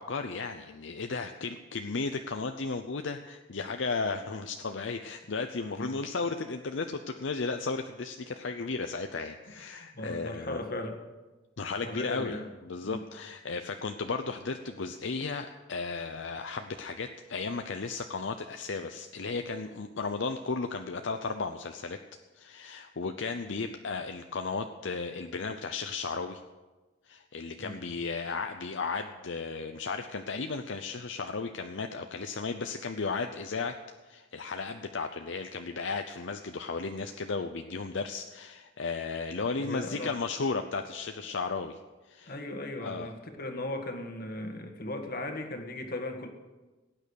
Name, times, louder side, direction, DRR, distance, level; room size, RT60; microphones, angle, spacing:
voice 1, 0.0-10.6 11.6-12.4 12.7-22.0 22.4-26.4 27.1-33.7 34.1-41.8 42.1-42.3 42.8-43.1, left 4 dB, 70° left, 6 dB, 0.7 m, -34 dB
voice 2, 9.8-11.0 11.8-12.5 12.8-13.0 27.6-27.8 39.6-40.1 42.3-46.3, left 1 dB, 50° left, 5 dB, 1.7 m, -37 dB
17.5 x 9.0 x 6.5 m, 1.2 s
head